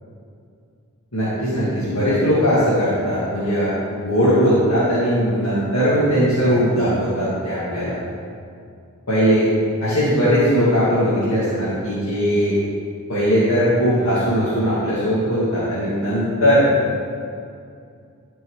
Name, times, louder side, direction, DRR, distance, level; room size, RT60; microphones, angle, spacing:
voice 1, 1.1-8.0 9.1-9.5 9.8-12.6 13.1-16.7, equal, 65° left, -11 dB, 2.2 m, -19 dB
12.0 x 4.7 x 4.8 m, 2.3 s
head